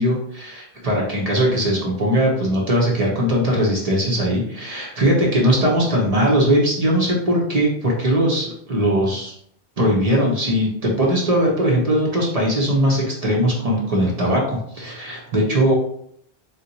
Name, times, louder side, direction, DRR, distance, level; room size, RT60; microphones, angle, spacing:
voice 1, 0.0-9.3 9.8-15.7, equal, 40° right, -2 dB, 0.7 m, -20 dB
2.7 x 2.2 x 3.9 m, 0.68 s
omnidirectional pair, 1.0 m